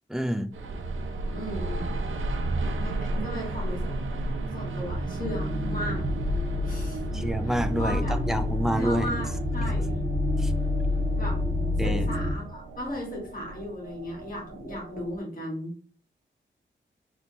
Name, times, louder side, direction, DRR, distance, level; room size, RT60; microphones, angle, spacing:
voice 1, 0.1-0.5 7.1-9.1 10.4-10.5 11.8-12.1, right 1 dB, ahead, 8 dB, 0.4 m, -28 dB
sound 1, 0.5-15.2, right 2 dB, 85° right, 0.7 m, -34 dB
voice 2, 1.3-1.8 2.8-3.9 4.5-6.1 6.7-7.1 7.4-8.2 8.7-10.0 11.1-11.4 11.8-15.7, equal, 45° left, -3 dB, 2.1 m, -36 dB
sound 2, 5.2-12.3, left 2 dB, 45° right, 1.0 m, -28 dB
4.2 x 3.3 x 3.0 m, 0.41 s
wide cardioid pair, 140°, 20 cm